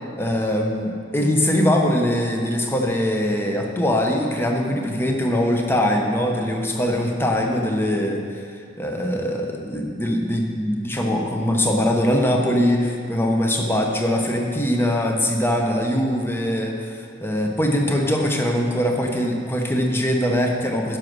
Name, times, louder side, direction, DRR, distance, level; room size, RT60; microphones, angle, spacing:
voice 1, 0.2-8.4 8.8-21.0, equal, 10° left, 1 dB, 0.9 m, -22 dB
10.5 x 6.3 x 6.1 m, 2.3 s
head